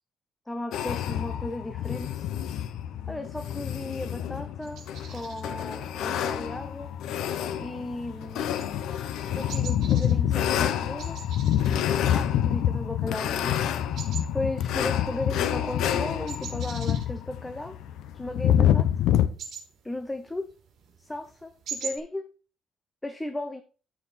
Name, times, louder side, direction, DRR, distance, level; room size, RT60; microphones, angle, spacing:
voice 1, 0.5-2.3 3.1-4.8 5.1-6.9 7.6-8.4 9.3-11.2 12.1-13.7 14.3-17.8 18.1-19.1 19.8-20.5 21.0-22.3 23.0-23.6, left 1 dB, 10° left, 0.6 m, -35 dB
sound 1, 0.7-19.3, left 10 dB, 75° left, 0.8 m, -27 dB
sound 2, 4.6-22.0, right 6 dB, 55° right, 3.6 m, -45 dB
14.0 x 4.9 x 4.2 m
cardioid pair, 165°, 0 cm